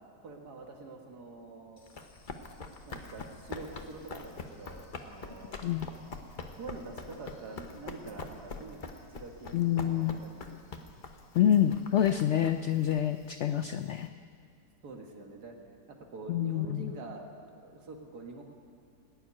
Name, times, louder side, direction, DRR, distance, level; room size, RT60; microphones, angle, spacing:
voice 1, 0.2-1.8 2.8-5.8 6.5-8.8 9.1-10.6 14.8-15.6 15.9-18.4, right 3 dB, 70° right, 2 dB, 2.2 m, -46 dB
Run, 1.8-14.0, left 3 dB, 35° left, 0.9 m, -45 dB
voice 2, 9.5-10.2 11.3-14.1 16.3-16.9, left 10 dB, 85° left, 9 dB, 0.6 m, -27 dB
18.5 x 7.2 x 9.7 m, 2.3 s
omnidirectional pair, 1.8 m